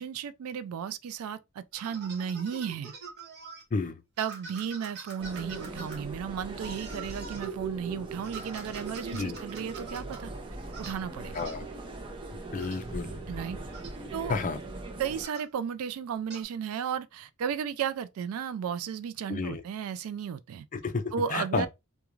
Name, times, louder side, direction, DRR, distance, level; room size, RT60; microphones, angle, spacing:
voice 1, 0.0-2.9 4.2-10.3 10.8-11.5 13.3-13.6 14.1-14.4 15.0-20.7 21.1-21.7, right 7 dB, 85° right, 0.3 m, -34 dB
sound 1, 1.7-3.6 4.2-6.0 6.6-7.5 8.2-10.2 10.7-11.0 11.3-11.6 12.6-12.8 13.7-14.0 15.2-15.5 16.3-16.5, right 4 dB, 50° right, 0.9 m, -45 dB
voice 2, 3.7-4.0 9.1-9.4 11.3-11.6 12.5-13.2 14.3-14.6 19.3-19.6 20.7-21.7, left 4 dB, 40° left, 0.4 m, -31 dB
sound 2, 5.2-15.3, right 3 dB, 25° right, 0.5 m, -40 dB
2.4 x 2.2 x 3.0 m
head